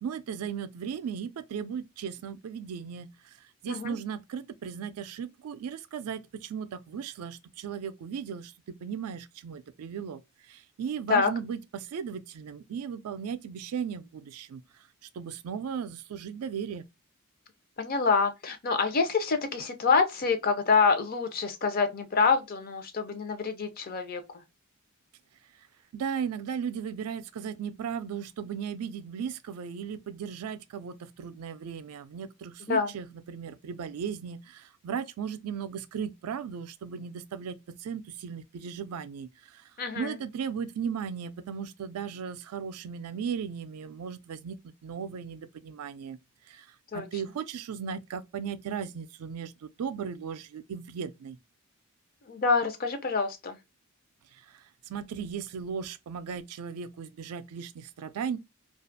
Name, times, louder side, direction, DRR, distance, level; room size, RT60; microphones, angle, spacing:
voice 1, 0.0-3.1 3.6-10.2 10.5-14.6 15.2-16.8 25.9-39.6 39.9-46.2 46.5-46.7 46.9-51.4 54.9-58.4, right 7 dB, 85° right, 0.4 m, -36 dB
voice 2, 17.8-24.2 32.7-32.9 39.8-40.2 46.9-47.1 52.3-53.6, left 5 dB, 40° left, 0.5 m, -26 dB
2.4 x 2.3 x 2.5 m
head